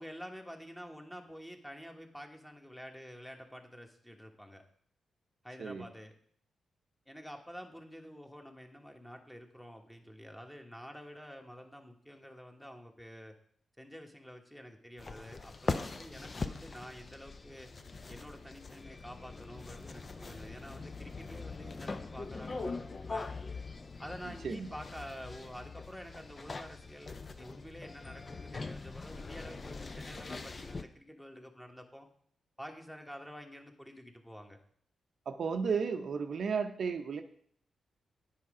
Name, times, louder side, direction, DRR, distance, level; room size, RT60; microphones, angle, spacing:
voice 1, 0.0-4.6 5.4-6.1 7.1-13.3 13.8-17.7 18.1-23.3 24.0-32.1 32.6-34.6, equal, 5° left, 3 dB, 1.3 m, -49 dB
sound 1, 15.0-30.8, left 3 dB, 40° left, 0.6 m, -42 dB
voice 2, 35.3-37.2, right 5 dB, 65° right, 6 dB, 0.6 m, -33 dB
8.6 x 5.0 x 4.9 m, 0.63 s
cardioid pair, 60°, 0 cm